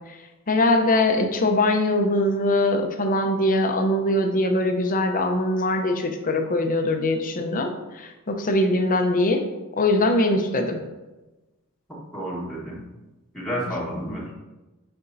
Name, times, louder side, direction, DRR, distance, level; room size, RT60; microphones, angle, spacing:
voice 1, 0.5-9.4 9.8-10.8 14.0-14.1, left 1 dB, 40° left, 5 dB, 0.7 m, -22 dB
voice 2, 11.9-12.8 13.3-14.3, equal, ahead, -7 dB, 1.3 m, -31 dB
9.7 x 4.4 x 2.7 m, 1.1 s
head